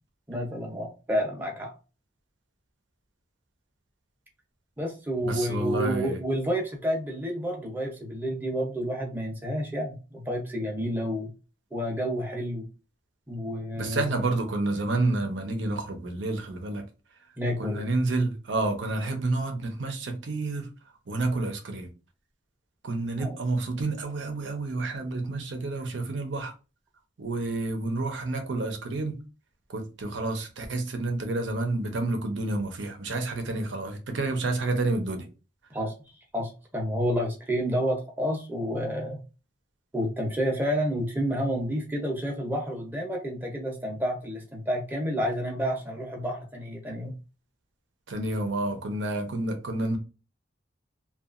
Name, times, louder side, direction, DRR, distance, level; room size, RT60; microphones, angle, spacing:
voice 1, 0.3-1.7 4.8-11.3 11.7-12.7 13.3-14.2 17.4-17.8 23.2-23.4 35.7-35.9 36.3-39.2 39.9-47.1, equal, 10° right, 0.6 m, -30 dB
voice 2, 5.2-6.2 13.8-16.8 17.6-20.7 21.1-21.9 22.8-26.5 27.2-29.2 29.7-35.3 48.1-50.0, right 2 dB, 90° right, 0.6 m, -29 dB
2.8 x 2.3 x 2.4 m
head